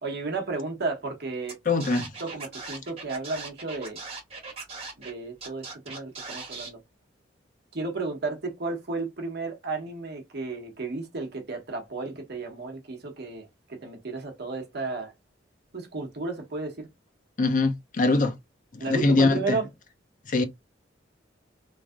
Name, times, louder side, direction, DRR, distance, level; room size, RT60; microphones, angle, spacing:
voice 1, 0.0-1.8 2.2-4.0 5.0-6.8 7.7-15.1 15.7-16.9 18.8-19.7, right 3 dB, 55° right, 0.9 m, -33 dB
Scratching (performance technique), 1.5-1.6 1.8-5.1 5.4-6.7, right 4 dB, 30° right, 1.5 m, -39 dB
voice 2, 1.7-2.1 17.4-18.3 18.7-19.6 20.3-20.4, left 3 dB, 45° left, 0.6 m, -23 dB
3.2 x 2.6 x 2.3 m
head